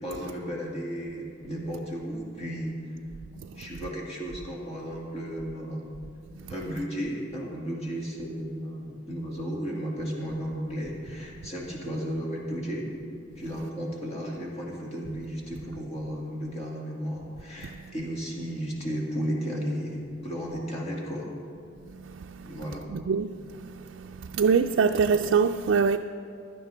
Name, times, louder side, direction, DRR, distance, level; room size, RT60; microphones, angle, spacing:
voice 1, 0.0-2.8 3.5-5.9 6.5-12.9 13.4-21.3 22.4-22.8, equal, 35° left, -3 dB, 2.2 m, -34 dB
voice 2, 22.9-23.4 24.2-26.0, right 5 dB, 70° right, 4 dB, 0.3 m, -23 dB
16.5 x 11.5 x 3.4 m, 2.4 s
head